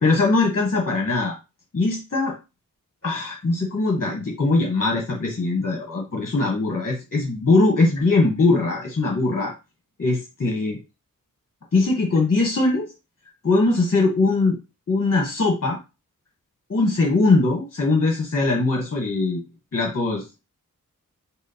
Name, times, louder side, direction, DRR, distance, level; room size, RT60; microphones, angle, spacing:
voice 1, 0.0-1.3 1.7-2.3 3.0-9.5 10.0-10.8 11.7-12.9 13.4-14.6 14.9-15.8 16.7-19.4 19.7-20.4, left 3 dB, 45° left, -1 dB, 1.3 m, -21 dB
6.1 x 2.1 x 4.2 m, 0.27 s
wide cardioid pair, 65°, 34 cm